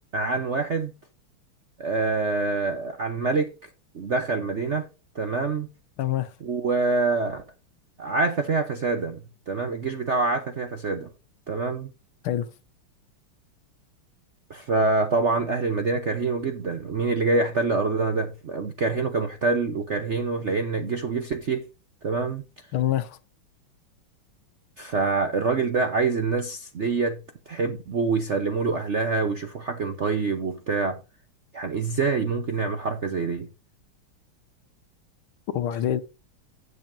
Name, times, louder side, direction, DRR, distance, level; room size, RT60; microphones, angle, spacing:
voice 1, 0.1-0.9 1.8-3.5 3.9-4.9 5.1-5.7 6.4-7.4 8.0-9.2 9.5-11.1 11.5-11.9 14.5-21.7 22.0-22.4 24.8-27.2 27.5-31.0 31.5-33.5, right 4 dB, 55° right, 0.8 m, -25 dB
voice 2, 6.0-6.3 12.2-12.5 22.7-23.2 35.5-36.0, left 11 dB, 75° left, 1.7 m, -25 dB
16.0 x 6.9 x 2.6 m
omnidirectional pair, 2.4 m